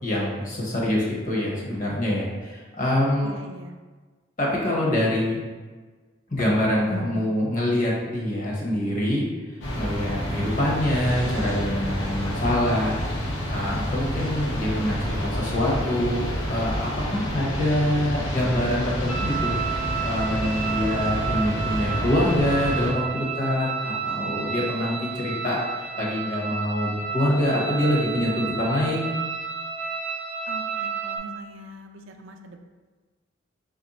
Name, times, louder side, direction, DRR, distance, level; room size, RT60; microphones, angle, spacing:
voice 1, 0.0-3.3 4.4-5.4 6.3-9.3 9.7-13.0 13.5-19.5 20.0-25.6 26.0-29.1, left 1 dB, 40° left, -4 dB, 0.8 m, -25 dB
voice 2, 3.2-3.8 30.5-32.6, right 1 dB, 80° right, 4 dB, 0.4 m, -42 dB
sound 1, 9.6-22.9, equal, 75° left, 0.7 m, -29 dB
sound 2, 19.1-31.2, right 6 dB, ahead, 0.4 m, -31 dB
3.2 x 2.5 x 4.1 m, 1.4 s
head